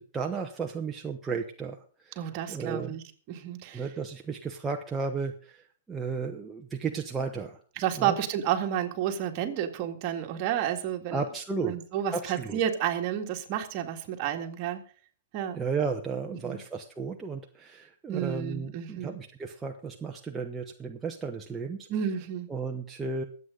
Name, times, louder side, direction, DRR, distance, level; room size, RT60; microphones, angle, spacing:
voice 1, 0.0-1.8 2.0-2.2 2.5-3.0 3.7-5.6 5.9-7.6 8.0-8.1 11.1-11.8 12.1-12.6 15.5-21.9 22.5-23.2, right 5 dB, 10° right, 1 dB, 1.0 m, -34 dB
voice 2, 2.2-3.8 7.8-11.2 11.6-14.8 15.3-15.6 16.4-16.6 18.1-19.2 21.9-22.5, right 10 dB, 40° right, 4 dB, 2.1 m, -31 dB
23.0 x 8.2 x 3.9 m, 0.42 s
hypercardioid pair, 140°, 0 cm